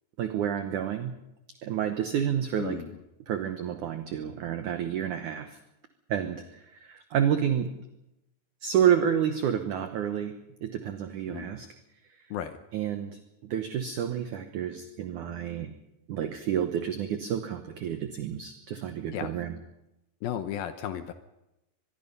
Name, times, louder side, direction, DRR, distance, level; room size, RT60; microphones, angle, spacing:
voice 1, 0.2-1.2 1.6-2.8 3.3-5.6 6.1-7.8 8.6-11.7 12.1-12.3 12.7-15.7 16.1-19.6, right 9 dB, 85° right, 8 dB, 1.7 m, -29 dB
voice 2, 2.6-2.9 11.3-11.5 12.3-12.6 19.1-19.3 20.2-21.1, left 10 dB, 75° left, 9 dB, 2.3 m, -34 dB
24.0 x 21.5 x 5.5 m, 0.91 s
omnidirectional pair, 5.0 m